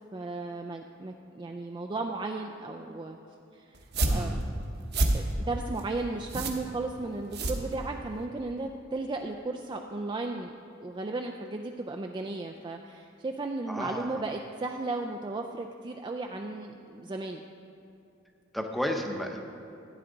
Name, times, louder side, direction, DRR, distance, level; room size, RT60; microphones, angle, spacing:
voice 1, 0.1-3.2 3.5-4.5 5.1-10.5 10.8-17.4, right 2 dB, 20° right, 3 dB, 0.4 m, -35 dB
sound 1, 3.7-8.2, right 1 dB, 55° right, 1.1 m, -30 dB
voice 2, 4.1-4.4 13.7-14.2 18.5-19.4, equal, ahead, 3 dB, 0.8 m, -33 dB
14.5 x 9.1 x 3.9 m, 2.6 s
head